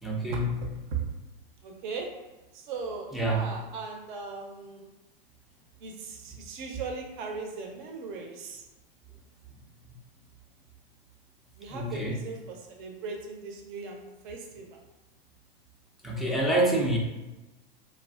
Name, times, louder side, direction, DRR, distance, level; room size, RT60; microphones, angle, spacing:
voice 1, 0.0-0.5 3.1-3.5 11.7-12.2 16.0-17.0, right 1 dB, ahead, -3 dB, 0.3 m, -27 dB
voice 2, 1.6-2.1 2.5-4.9 5.8-8.6 11.6-14.8 16.1-16.4, right 4 dB, 55° right, 2 dB, 0.7 m, -38 dB
3.2 x 2.3 x 2.3 m, 1.1 s
hypercardioid pair, 110°, 29 cm